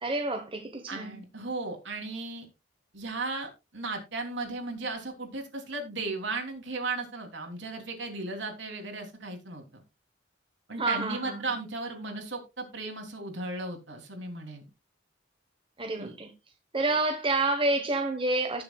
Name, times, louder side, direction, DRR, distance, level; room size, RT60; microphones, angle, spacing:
voice 1, 0.0-1.2 10.8-11.5 15.8-16.3 16.7-18.6, right 2 dB, 30° right, 1.2 m, -28 dB
voice 2, 0.9-2.5 2.9-9.8 10.7-14.6 16.0-16.1, right 3 dB, 75° right, 3.2 m, -36 dB
18.5 x 6.9 x 2.4 m
head